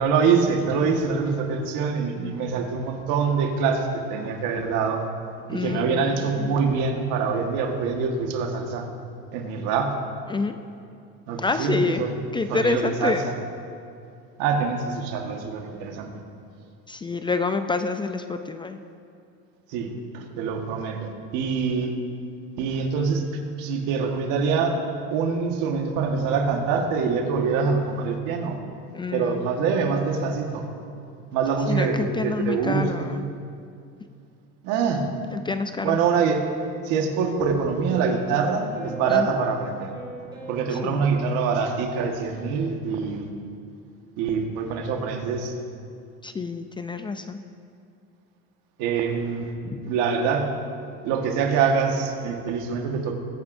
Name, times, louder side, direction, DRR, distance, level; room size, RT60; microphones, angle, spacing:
voice 1, 0.0-5.1 5.5-8.9 9.3-9.9 11.3-12.1 12.5-13.2 14.4-16.1 19.7-21.9 22.6-23.2 23.6-24.8 25.1-28.6 29.1-30.6 31.3-33.1 34.6-35.1 35.8-36.5 36.8-39.9 40.5-43.3 44.2-45.5 48.8-49.5 49.8-50.5 51.0-53.1, right 5 dB, 70° right, 3 dB, 1.6 m, -25 dB
voice 2, 5.5-6.5 10.3-10.7 11.4-12.1 12.3-13.3 16.9-18.8 28.9-29.4 31.7-33.3 35.3-36.0 39.1-39.3 40.7-41.0 46.2-47.4 49.6-49.8, left 4 dB, 15° left, 8 dB, 0.4 m, -28 dB
sound 1, 37.0-41.4, right 2 dB, 15° right, 2.8 m, -41 dB
21.5 x 9.1 x 2.7 m, 2.4 s
supercardioid pair, 115°, 32 cm